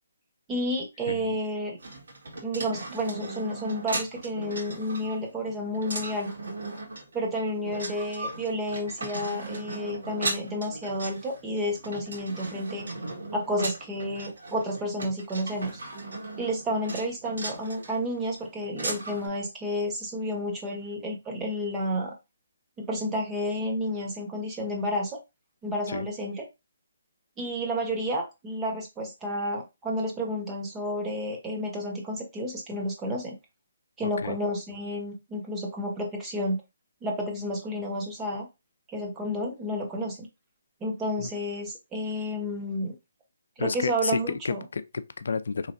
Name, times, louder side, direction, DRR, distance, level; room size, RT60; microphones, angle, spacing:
voice 1, 0.5-1.8 2.4-6.3 7.1-12.9 13.3-15.7 16.3-22.1 22.8-25.2 25.6-26.4 27.4-33.4 34.0-36.6 37.0-38.5 38.9-40.3 40.8-43.0 43.6-44.6, equal, 10° right, 0.9 m, -31 dB
voice 2, 1.1-1.4 25.9-26.1 34.0-34.4 41.2-41.3 43.6-45.7, left 5 dB, 70° left, 0.4 m, -31 dB
sound 1, 1.8-19.3, right 2 dB, 80° right, 1.7 m, -37 dB
4.0 x 3.2 x 2.6 m
hypercardioid pair, 165°, 0 cm